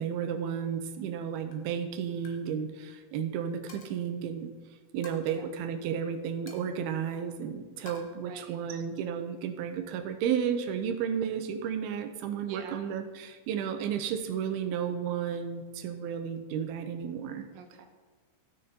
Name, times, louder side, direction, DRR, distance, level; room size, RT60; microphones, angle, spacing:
voice 1, 0.0-4.5 4.9-17.4, right 8 dB, 85° right, 7 dB, 2.7 m, -33 dB
Coin (dropping), 0.9-1.2 1.5-1.7 2.1-2.4 2.7-2.9 3.7-4.1 5.0-5.4 6.5-7.4 7.9-8.0, left 2 dB, 80° left, 1.0 m, -51 dB
voice 2, 8.2-8.8 12.5-12.9 17.5-17.8, right 7 dB, 65° right, 4 dB, 1.7 m, -46 dB
15.0 x 6.5 x 4.4 m, 1.4 s
omnidirectional pair, 4.4 m